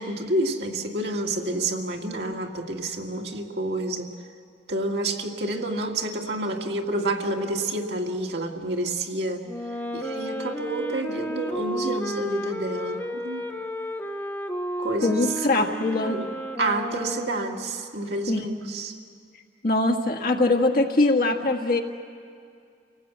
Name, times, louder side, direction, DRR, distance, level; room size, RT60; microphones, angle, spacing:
voice 1, 0.0-4.1 4.7-9.4 9.9-13.5 14.8-15.7 16.1-16.3 16.6-19.0, right 2 dB, 70° right, 2 dB, 2.0 m, -29 dB
Wind instrument woodwind instrument, 9.5-17.8, equal, 15° left, 1.2 m, -33 dB
voice 2, 15.0-16.2 18.3-18.7 19.6-21.8, left 2 dB, 55° left, 3 dB, 1.7 m, -22 dB
29.0 x 18.5 x 8.2 m, 2.3 s
head